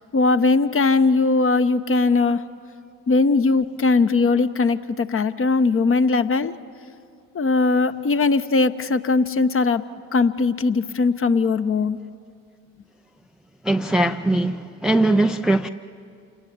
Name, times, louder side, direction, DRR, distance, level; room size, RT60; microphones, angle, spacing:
voice 1, 0.1-2.4 3.1-6.5 7.3-9.8 10.1-12.0, left 3 dB, 30° left, 1.0 m, -19 dB
voice 2, 13.6-15.7, right 1 dB, ahead, 0.5 m, -20 dB
28.0 x 19.0 x 8.7 m
figure-of-eight pair, 55°, 46 cm